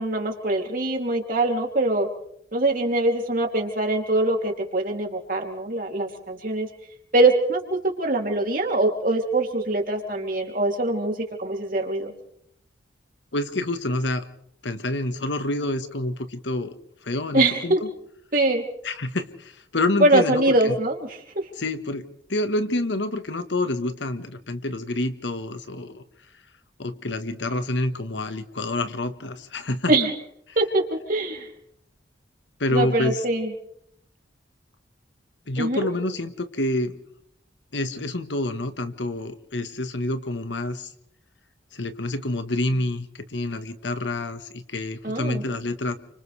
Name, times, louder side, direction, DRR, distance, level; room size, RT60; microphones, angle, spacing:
voice 1, 0.0-2.1 2.5-6.7 7.1-12.1 17.3-17.8 18.3-18.6 20.0-21.5 29.9-30.1 30.6-31.5 32.7-33.5 35.6-35.9 45.0-45.4, right 2 dB, 45° right, 2 dB, 3.1 m, -23 dB
voice 2, 13.3-14.2 14.6-16.7 17.0-17.9 18.8-20.7 21.6-26.0 26.8-29.9 32.6-33.2 35.5-37.0 37.7-40.9 41.7-46.0, left 2 dB, 75° left, 9 dB, 1.5 m, -28 dB
30.0 x 25.5 x 3.4 m, 0.71 s
head